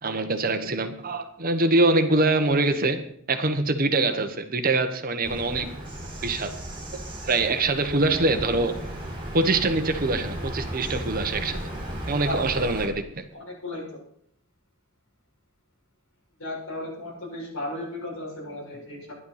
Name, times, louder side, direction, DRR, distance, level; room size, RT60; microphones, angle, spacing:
voice 1, 0.0-5.7 6.2-6.5 6.9-8.8 9.3-11.6 12.1-13.2, right 2 dB, 40° right, 1.1 m, -24 dB
Bird vocalization bird call bird song, 5.2-12.8, right 1 dB, 25° right, 3.6 m, -35 dB
voice 2, 12.2-12.7 13.3-13.9 16.4-19.1, left 1 dB, 70° left, 6.8 m, -35 dB
12.0 x 11.0 x 5.7 m
head